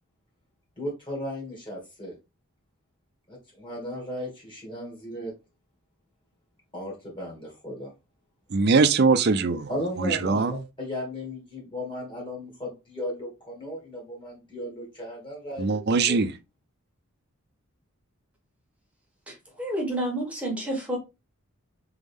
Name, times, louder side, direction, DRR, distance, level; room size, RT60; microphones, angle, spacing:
voice 1, 0.8-2.2 3.3-5.3 6.7-7.9 9.7-16.2, left 1 dB, 25° left, 2.2 m, -36 dB
voice 2, 8.5-9.7 10.0-10.5 15.6-16.3, right 4 dB, 50° right, 0.4 m, -21 dB
voice 3, 19.3-21.0, right 1 dB, 5° right, 1.5 m, -30 dB
4.0 x 3.5 x 3.4 m
head